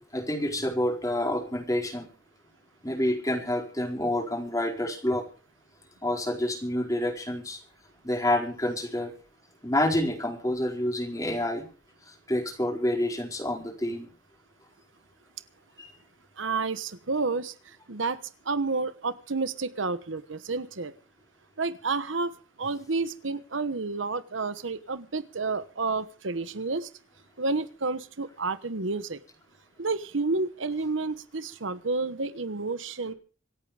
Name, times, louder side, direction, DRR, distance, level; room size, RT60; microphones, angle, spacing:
voice 1, 0.1-2.1 2.8-5.2 6.0-7.6 8.0-9.1 9.6-11.6 12.3-14.1 15.8-15.9, left 1 dB, 20° left, 1 dB, 4.6 m, -28 dB
voice 2, 16.4-17.5 17.9-18.2 18.5-20.9 21.6-22.3 22.6-26.9 27.4-29.2 29.8-33.1, right 3 dB, 90° right, 14 dB, 1.2 m, -30 dB
26.5 x 8.9 x 5.1 m, 0.38 s
head